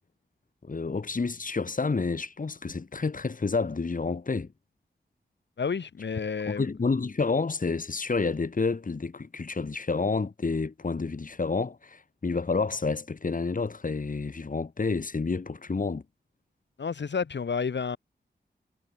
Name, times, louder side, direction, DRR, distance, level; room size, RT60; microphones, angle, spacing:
voice 1, 0.6-4.5 6.5-16.0, left 4 dB, 50° left, 2.9 m, -29 dB
voice 2, 5.6-6.7 16.8-18.0, left 5 dB, 90° left, 3.6 m, -30 dB
wide cardioid pair, 95°, 18 cm